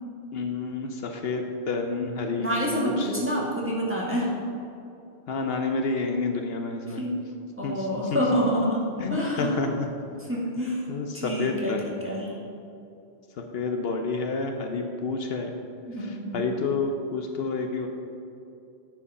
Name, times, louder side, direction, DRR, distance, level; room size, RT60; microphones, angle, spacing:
voice 1, 0.3-3.1 5.3-7.0 7.6-8.2 9.0-9.9 10.9-11.9 13.4-15.5 16.3-17.9, left 4 dB, 70° left, 4 dB, 0.9 m, -29 dB
voice 2, 2.4-4.3 6.8-7.2 7.6-9.6 10.2-12.4 15.9-16.4, equal, 10° right, -5 dB, 1.6 m, -28 dB
9.6 x 4.9 x 5.5 m, 2.7 s
omnidirectional pair, 1.1 m